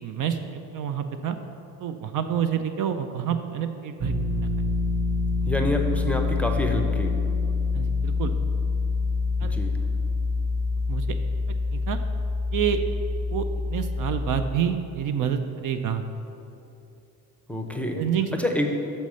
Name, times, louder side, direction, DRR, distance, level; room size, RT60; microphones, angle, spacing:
voice 1, 0.0-1.4 1.8-4.5 7.7-8.3 9.4-9.5 10.9-11.1 11.7-12.0 12.5-12.8 13.3-16.0 17.9-18.3, right 8 dB, 55° right, 8 dB, 0.5 m, -28 dB
sound 1, 4.0-14.5, left 3 dB, 25° right, 1.1 m, -26 dB
voice 2, 5.5-7.1 9.4-9.7 17.5-18.0 18.4-18.7, left 1 dB, 5° left, 2 dB, 0.6 m, -27 dB
7.1 x 4.1 x 6.2 m, 2.8 s
cardioid pair, 110°, 39 cm